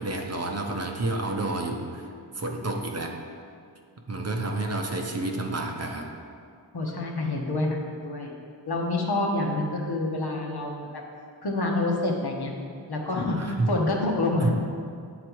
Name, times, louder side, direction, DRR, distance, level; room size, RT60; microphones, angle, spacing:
voice 1, 0.0-2.1 2.3-3.2 4.1-6.1 13.3-13.7 14.4-14.5, right 2 dB, 35° right, 2 dB, 0.8 m, -29 dB
voice 2, 6.7-8.3 8.7-10.8 11.4-12.5 12.9-14.5, left 2 dB, 60° left, 0 dB, 1.1 m, -27 dB
7.7 x 4.0 x 4.6 m, 2.3 s
cardioid pair, 50°, 44 cm